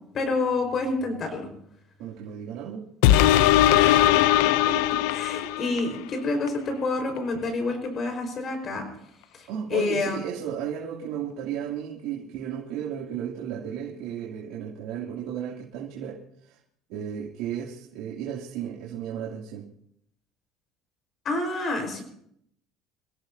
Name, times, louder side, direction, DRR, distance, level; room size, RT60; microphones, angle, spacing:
voice 1, 0.1-1.5 3.7-4.1 4.6-4.8 5.1-8.9 9.3-10.2 21.2-22.0, left 3 dB, 30° left, 4 dB, 4.8 m, -28 dB
voice 2, 2.0-2.8 9.5-16.6 16.9-19.7, right 9 dB, 75° right, -3 dB, 2.8 m, -34 dB
sound 1, 3.0-6.0 6.5-6.6, left 13 dB, 90° left, 0.6 m, -19 dB
27.5 x 16.0 x 2.8 m, 0.68 s
cardioid pair, 160°, 0 cm